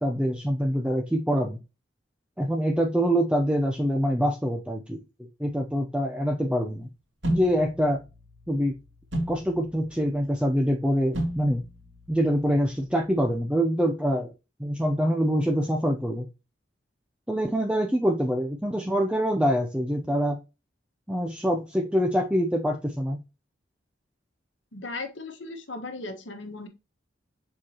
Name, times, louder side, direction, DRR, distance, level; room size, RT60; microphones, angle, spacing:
voice 1, 0.0-1.6 2.4-5.0 5.4-6.9 7.3-8.0 8.5-8.8 9.3-11.6 12.1-14.3 14.6-16.3 17.3-20.4 21.1-23.2, equal, 5° right, 2 dB, 0.7 m, -25 dB
sound 1, 7.2-13.3, right 1 dB, 70° right, 2.5 m, -35 dB
voice 2, 24.7-26.7, left 2 dB, 70° left, 7 dB, 1.4 m, -37 dB
7.3 x 4.4 x 2.9 m, 0.28 s
head